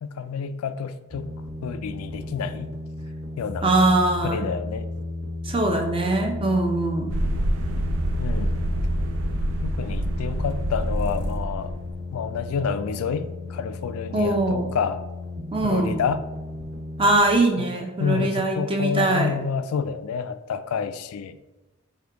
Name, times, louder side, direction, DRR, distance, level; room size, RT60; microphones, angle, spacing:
voice 1, 0.0-2.7 3.4-3.9 4.2-4.9 8.2-8.5 9.6-11.8 12.1-15.0 15.6-16.2 17.6-17.7 18.0-21.4, left 6 dB, 90° left, 11 dB, 0.3 m, -29 dB
sound 1, 1.1-17.2, left 2 dB, 60° right, 1.3 m, -34 dB
voice 2, 3.6-4.5 5.4-7.1 14.1-14.7 15.5-15.9 17.0-19.4, right 2 dB, 25° right, 2 dB, 0.5 m, -22 dB
sound 2, 7.1-11.9, right 1 dB, 75° right, 0.4 m, -27 dB
5.1 x 2.3 x 4.6 m, 1.0 s
head